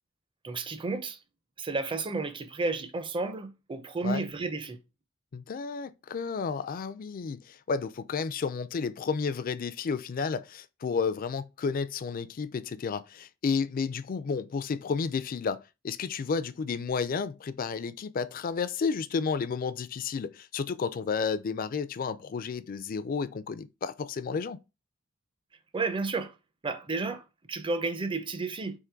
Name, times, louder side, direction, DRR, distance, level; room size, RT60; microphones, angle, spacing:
voice 1, 0.4-1.2 1.6-4.8 25.7-26.3 26.6-28.8, right 3 dB, 25° right, 0.5 m, -32 dB
voice 2, 5.3-24.6, left 5 dB, 45° left, 0.4 m, -32 dB
3.7 x 2.9 x 4.4 m
head